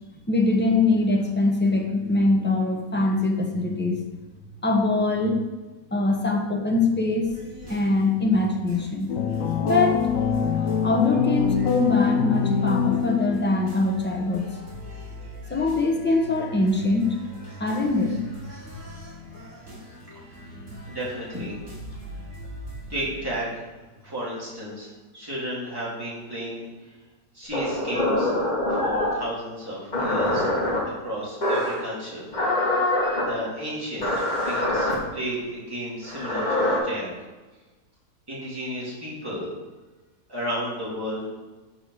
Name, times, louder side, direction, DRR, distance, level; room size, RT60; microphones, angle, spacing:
voice 1, 0.3-4.0 4.6-5.4 5.9-7.3 7.7-9.1 9.6-10.0 10.8-14.5 15.5-17.2 17.6-18.2, left 2 dB, 10° left, 1 dB, 0.6 m, -23 dB
sound 1, 7.2-23.4, right 1 dB, 45° right, 3.0 m, -41 dB
sound 2, 9.1-13.6, left 7 dB, 65° left, 0.9 m, -24 dB
voice 2, 20.9-21.6 22.9-23.7 24.0-24.9 25.1-26.6 27.3-28.3 28.7-30.5 30.9-32.3 33.2-34.1 34.4-37.1 38.3-39.5 40.3-41.3, equal, 15° right, -8 dB, 2.8 m, -33 dB
sound 3, 27.5-29.2 29.9-30.8 31.4-31.8 32.3-33.2 34.0-34.9 36.0-36.8, left 1 dB, 25° left, 1.6 m, -24 dB
5.4 x 5.3 x 6.3 m, 1.2 s
omnidirectional pair, 1.8 m